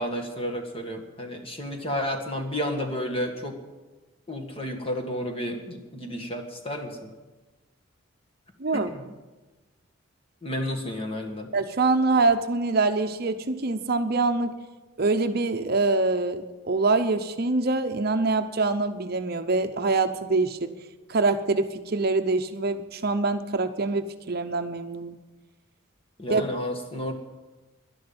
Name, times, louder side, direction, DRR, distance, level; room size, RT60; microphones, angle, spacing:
voice 1, 0.0-3.6 4.3-7.1 8.7-9.0 10.4-11.5 26.2-27.1, equal, 25° left, 4 dB, 1.8 m, -31 dB
voice 2, 8.6-9.1 11.5-14.5 15.0-20.7 21.1-25.2 26.3-26.4, right 3 dB, 50° right, 8 dB, 0.7 m, -25 dB
11.5 x 11.0 x 8.7 m, 1.2 s
head